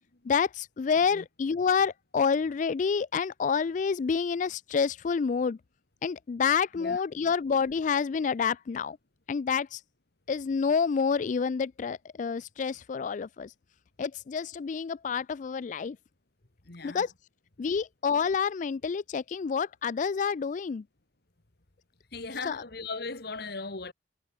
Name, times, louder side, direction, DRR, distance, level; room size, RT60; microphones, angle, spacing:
voice 1, 0.2-5.6 6.0-9.0 9.3-9.8 10.3-13.5 14.0-16.0 16.8-17.1 17.6-20.8 22.5-22.6, left 6 dB, 40° left, 0.3 m, -28 dB
voice 2, 16.7-17.1 22.1-23.9, left 3 dB, 55° left, 1.8 m, -38 dB
head